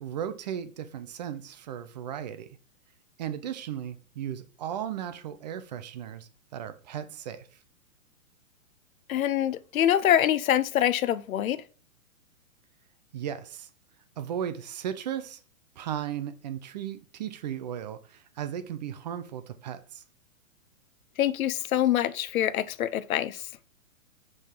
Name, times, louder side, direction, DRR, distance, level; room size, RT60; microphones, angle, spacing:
voice 1, 0.0-2.5 3.2-7.6 13.1-13.7 14.2-15.4 15.8-20.0, right 9 dB, 30° right, 0.4 m, -36 dB
voice 2, 9.1-11.6 21.2-23.4, left 11 dB, 75° left, 0.6 m, -25 dB
5.3 x 3.6 x 5.7 m
hypercardioid pair, 135°, 42 cm